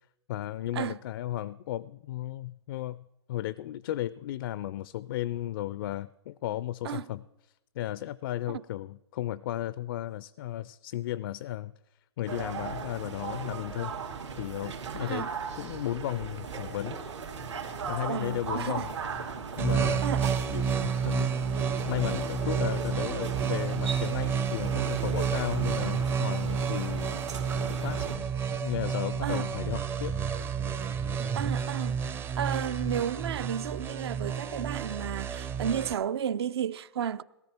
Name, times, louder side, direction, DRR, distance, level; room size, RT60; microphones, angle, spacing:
voice 1, 0.3-7.2 7.7-11.7 12.2-15.3 15.6-17.0 17.8-18.9 19.6-20.0 20.5-27.1 27.6-28.1 28.5-30.2, left 13 dB, 50° left, 0.4 m, -35 dB
sound 1, 12.3-28.2, right 6 dB, 85° right, 2.7 m, -37 dB
voice 2, 18.1-18.9 20.0-20.3 29.2-29.5 31.3-37.2, right 9 dB, 65° right, 0.6 m, -33 dB
sound 2, 19.6-35.9, right 6 dB, 15° right, 0.5 m, -30 dB
17.5 x 13.5 x 4.3 m
hypercardioid pair, 135°, 15 cm